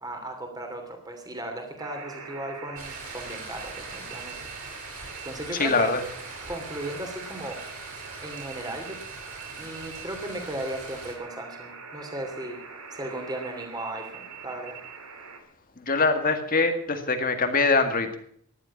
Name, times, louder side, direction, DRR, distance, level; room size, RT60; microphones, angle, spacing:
voice 1, 0.0-4.4 5.2-6.0 6.5-7.6 8.2-9.0 9.5-12.6 12.9-14.8, right 1 dB, 15° right, 4 dB, 2.9 m, -36 dB
sound 1, 1.8-15.4, right 5 dB, 75° right, 2.7 m, -43 dB
sound 2, 2.8-11.1, right 3 dB, 40° right, 5.3 m, -42 dB
voice 2, 5.6-6.0 15.9-18.2, left 3 dB, 40° left, 7 dB, 1.9 m, -23 dB
14.5 x 11.0 x 7.2 m, 0.64 s
head